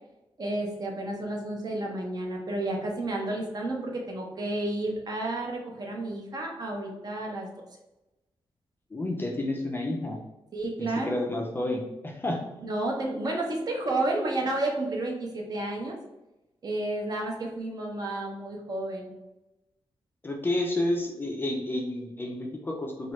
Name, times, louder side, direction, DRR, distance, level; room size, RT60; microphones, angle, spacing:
voice 1, 0.4-7.5 10.5-11.3 12.6-15.9 16.6-19.1, right 2 dB, 40° right, 0 dB, 0.6 m, -31 dB
voice 2, 8.9-10.2 10.8-12.4 20.2-23.1, left 1 dB, 20° left, 1 dB, 0.4 m, -30 dB
3.1 x 2.3 x 2.9 m, 0.98 s
wide cardioid pair, 155°, 10 cm